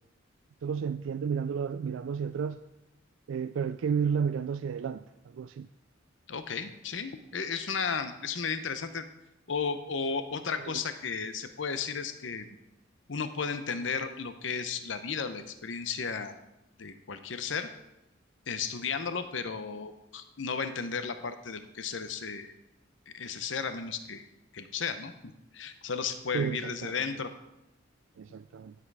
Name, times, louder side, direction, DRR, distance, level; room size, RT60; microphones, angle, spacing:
voice 1, 0.6-2.6 3.3-5.0 5.3-5.7 10.7-10.8 26.3-27.0 28.2-28.7, right 6 dB, 80° right, 0.3 m, -32 dB
voice 2, 6.3-9.0 9.5-12.5 13.1-16.4 16.8-17.7 18.5-22.5 23.1-24.2 24.5-27.3, left 5 dB, 70° left, 0.8 m, -34 dB
11.5 x 7.6 x 4.8 m
head